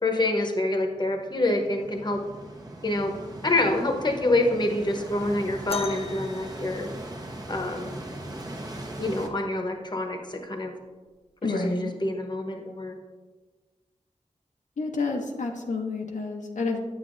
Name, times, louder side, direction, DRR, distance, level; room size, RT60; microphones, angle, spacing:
voice 1, 0.0-2.2 2.8-6.9 7.5-7.9 9.0-10.7 11.5-12.9, left 2 dB, 35° left, 3 dB, 0.9 m, -26 dB
sound 1, 1.0-9.3, right 1 dB, 30° right, 0.9 m, -39 dB
sound 2, 5.7-7.6 9.3-9.4 10.1-10.4 11.3-11.4, left 4 dB, 55° left, 0.4 m, -38 dB
voice 2, 11.4-11.9 14.8-16.8, left 3 dB, 85° left, 1 dB, 0.7 m, -29 dB
8.8 x 7.0 x 2.5 m, 1.3 s
wide cardioid pair, 85°, 12 cm